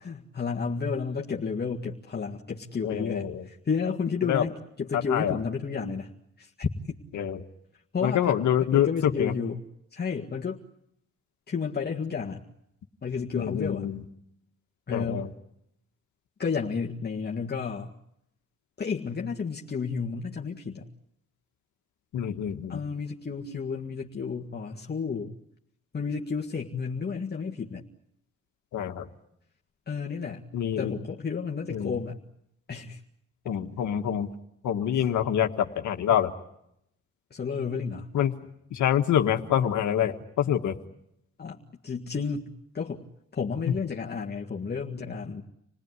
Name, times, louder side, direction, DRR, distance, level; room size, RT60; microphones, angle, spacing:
voice 1, 0.0-6.1 6.4-7.0 7.9-8.4 8.7-9.6 9.9-10.6 11.5-12.4 13.0-13.9 14.9-15.3 16.4-17.9 18.8-20.9 22.7-25.3 25.9-27.8 29.9-30.4 30.8-32.2 32.7-33.0 33.5-33.6 35.0-35.1 37.3-38.1 41.4-41.6 41.8-43.0 43.3-45.4, left 5 dB, 35° left, -1 dB, 1.8 m, -31 dB
voice 2, 2.8-3.4 4.2-4.4 4.9-5.4 7.1-7.4 8.0-9.3 13.3-14.0 14.9-15.3 22.1-22.8 28.7-29.1 30.5-30.9 31.7-31.9 33.4-34.3 34.6-36.3 38.1-38.3 38.7-40.8, left 10 dB, 70° left, 5 dB, 1.6 m, -26 dB
28.0 x 18.5 x 9.7 m, 0.79 s
cardioid pair, 90°, 30 cm